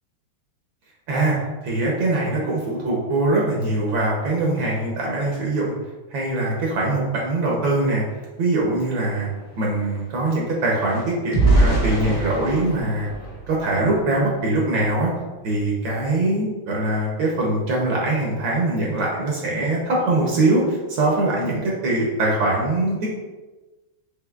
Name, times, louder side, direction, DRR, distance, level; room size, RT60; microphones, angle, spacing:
voice 1, 1.6-5.7 6.1-8.0 8.4-9.3 9.6-13.1 13.5-15.1 15.4-23.1, right 2 dB, 70° right, -3 dB, 1.4 m, -22 dB
sound 1, 8.4-8.5 8.7-14.2 14.7-15.0 15.3-15.5, right 2 dB, 45° left, 0.9 m, -25 dB
5.6 x 3.1 x 2.3 m, 1.2 s
omnidirectional pair, 2.4 m